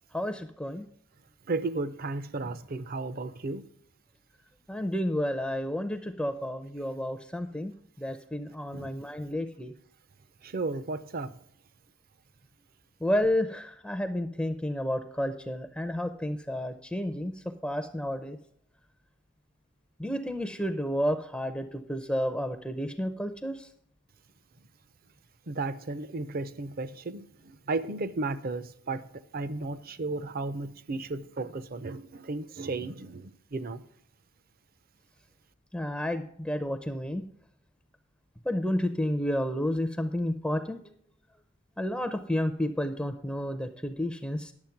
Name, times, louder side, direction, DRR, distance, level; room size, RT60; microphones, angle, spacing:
voice 1, 0.1-0.9 4.7-9.7 13.0-18.4 20.0-23.7 35.7-37.3 38.4-40.9 41.8-44.5, left 1 dB, 5° left, 0.5 m, -31 dB
voice 2, 1.5-3.6 8.7-8.9 10.4-11.4 25.5-29.1 29.3-33.8, right 3 dB, 45° right, 0.6 m, -34 dB
11.0 x 7.2 x 5.8 m
head